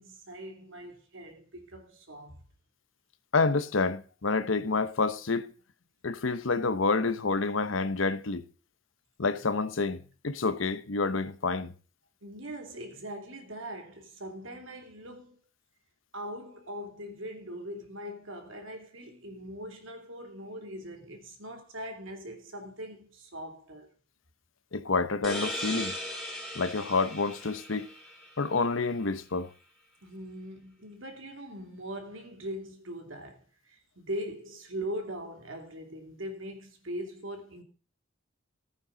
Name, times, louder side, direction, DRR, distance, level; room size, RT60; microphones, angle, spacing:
voice 1, 0.0-2.4 12.2-15.4 16.1-23.9 30.0-37.6, equal, 80° right, 2.8 m, -41 dB
voice 2, 3.3-5.5 6.0-8.4 9.2-10.0 10.2-11.7 24.7-26.0 26.5-27.9 28.4-29.5, left 4 dB, 85° left, 0.9 m, -28 dB
sound 1, 25.2-28.7, left 1 dB, ahead, 3.7 m, -38 dB
15.0 x 9.3 x 3.9 m
head